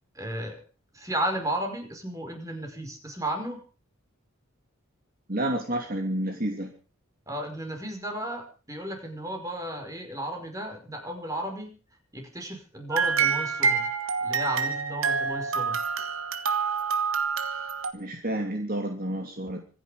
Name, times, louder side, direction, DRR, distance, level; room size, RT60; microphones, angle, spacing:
voice 1, 0.2-0.6 0.9-3.6 7.3-11.8 12.1-13.9 14.2-15.8, right 1 dB, 15° right, 4 dB, 5.3 m, -34 dB
voice 2, 5.3-6.7 17.9-19.6, right 1 dB, 40° right, 3 dB, 2.9 m, -30 dB
sound 1, 12.9-17.9, right 5 dB, 70° right, 2.2 m, -27 dB
26.0 x 10.5 x 5.1 m, 0.37 s
head